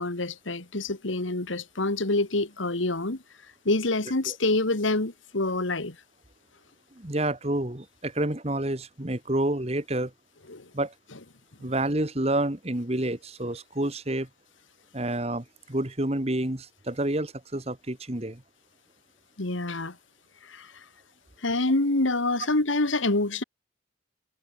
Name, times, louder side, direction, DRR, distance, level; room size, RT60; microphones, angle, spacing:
voice 1, 0.0-3.2 3.7-6.0 10.5-10.7 19.4-20.0 20.4-20.8 21.4-23.4, left 2 dB, 80° left, 2.1 m, -26 dB
voice 2, 6.9-10.1 10.7-10.9 11.6-14.3 14.9-18.4, right 1 dB, 30° right, 1.7 m, -29 dB
head